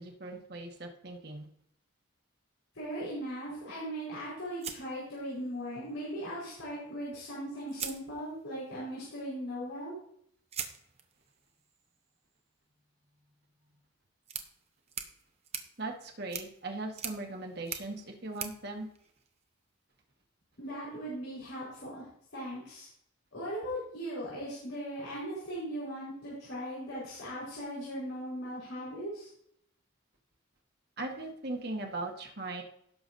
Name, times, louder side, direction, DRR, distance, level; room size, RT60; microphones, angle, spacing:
voice 1, 0.0-1.5 15.8-18.9 31.0-32.6, right 2 dB, 50° right, 1 dB, 1.4 m, -39 dB
voice 2, 2.7-10.0 20.6-22.0 22.3-22.9 23.3-29.3, equal, 70° left, -8 dB, 4.6 m, -38 dB
sound 1, 4.6-5.7 7.1-7.2 7.7-8.7 10.5-19.7, right 7 dB, 30° right, 0.8 m, -44 dB
17.0 x 6.9 x 2.7 m, 0.69 s
head